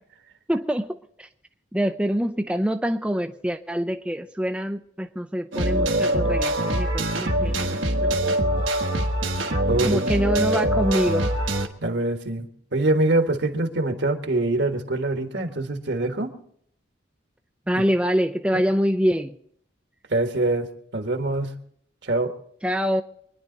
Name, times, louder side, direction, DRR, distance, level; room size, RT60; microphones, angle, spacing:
voice 1, 0.5-1.3 1.7-8.1 9.8-11.3 17.7-19.3 22.6-23.0, equal, 5° right, 5 dB, 0.4 m, -25 dB
sound 1, 5.5-11.7, right 1 dB, 80° right, 1.5 m, -23 dB
voice 2, 9.7-10.1 11.8-16.4 20.1-21.6 22.0-22.3, right 2 dB, 65° right, 6 dB, 1.6 m, -24 dB
25.0 x 10.5 x 3.9 m, 0.67 s
head